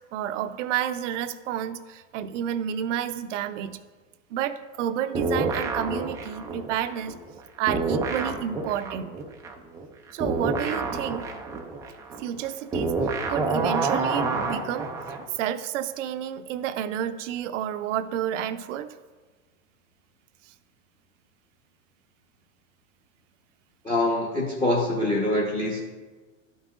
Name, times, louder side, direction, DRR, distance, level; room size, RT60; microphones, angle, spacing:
voice 1, 0.1-3.8 4.3-7.1 7.6-9.1 10.1-11.3 12.2-14.9 15.3-19.0 20.4-20.5, right 10 dB, 70° right, 11 dB, 0.6 m, -30 dB
All Around, 5.1-7.4 7.7-15.3, right 3 dB, 10° right, 0.3 m, -28 dB
voice 2, 23.8-25.8, left 1 dB, 15° left, -2 dB, 1.1 m, -24 dB
12.5 x 5.5 x 2.5 m, 1.4 s
supercardioid pair, 125°, 38 cm